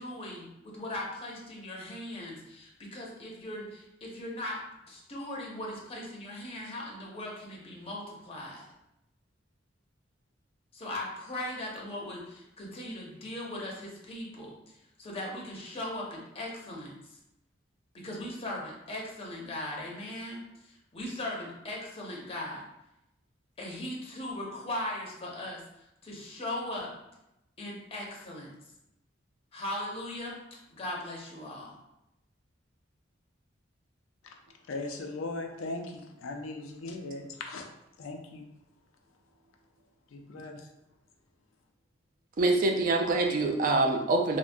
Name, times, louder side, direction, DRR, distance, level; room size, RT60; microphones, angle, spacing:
voice 1, 0.0-4.6 4.8-8.7 10.7-16.9 17.9-22.7 23.6-25.6 26.0-26.9 27.6-28.5 29.5-30.4 30.7-31.7, left 1 dB, 30° left, -3 dB, 0.6 m, -39 dB
voice 2, 34.7-37.6 38.0-38.5 40.1-40.7, left 2 dB, 85° left, 3 dB, 0.4 m, -38 dB
voice 3, 42.4-44.4, right 2 dB, 45° right, 3 dB, 0.4 m, -25 dB
3.4 x 2.1 x 2.5 m, 0.87 s
head